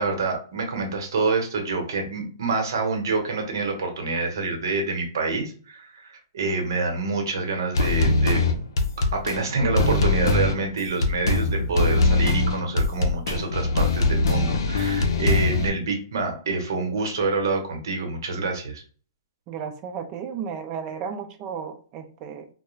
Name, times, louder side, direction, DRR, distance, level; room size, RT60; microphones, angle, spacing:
voice 1, 0.0-8.4 9.1-18.8, right 3 dB, 70° right, 2 dB, 0.9 m, -27 dB
sound 1, 7.7-15.7, left 3 dB, 75° left, 0.5 m, -22 dB
voice 2, 19.5-22.5, right 7 dB, 25° right, 6 dB, 0.3 m, -34 dB
2.3 x 2.1 x 3.1 m, 0.42 s
hypercardioid pair, 165°, 2 cm